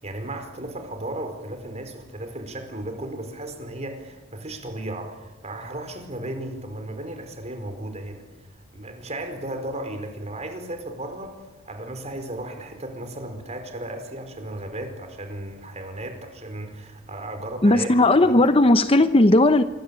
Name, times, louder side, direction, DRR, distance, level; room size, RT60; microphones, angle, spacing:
voice 1, 0.0-8.2 8.7-18.5, right 1 dB, 35° right, 4.9 m, -35 dB
voice 2, 17.6-19.6, left 2 dB, 30° left, 0.9 m, -16 dB
26.0 x 24.5 x 8.4 m
head